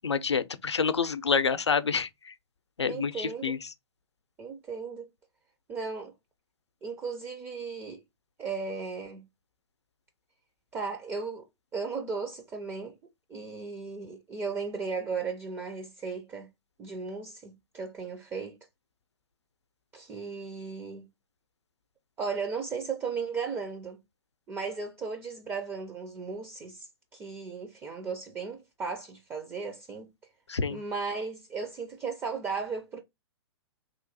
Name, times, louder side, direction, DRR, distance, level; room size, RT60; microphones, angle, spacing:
voice 1, 0.0-2.3 2.8-3.7 30.5-30.8, left 5 dB, 80° left, 0.5 m, -28 dB
voice 2, 2.9-3.6 4.4-5.1 5.7-6.1 6.8-8.0 8.4-9.2 10.7-11.4 11.7-13.0 13.3-16.5 16.8-18.6 19.9-21.1 22.2-24.0 24.5-30.1 30.7-33.0, right 5 dB, 15° right, 0.4 m, -36 dB
3.1 x 2.5 x 3.7 m
figure-of-eight pair, 115°, 14 cm